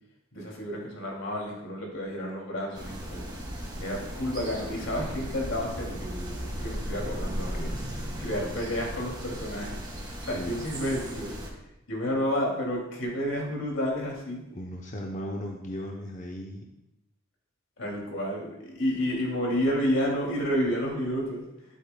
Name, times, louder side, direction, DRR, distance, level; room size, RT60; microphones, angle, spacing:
voice 1, 0.3-3.3 3.8-7.7 8.2-11.4 11.9-14.4 17.8-21.5, equal, 80° left, -1 dB, 2.6 m, -30 dB
sound 1, 2.7-11.5, equal, 20° right, 1.6 m, -36 dB
voice 2, 14.5-16.6, left 1 dB, 40° left, 0 dB, 0.8 m, -36 dB
11.5 x 8.3 x 2.2 m, 0.90 s
head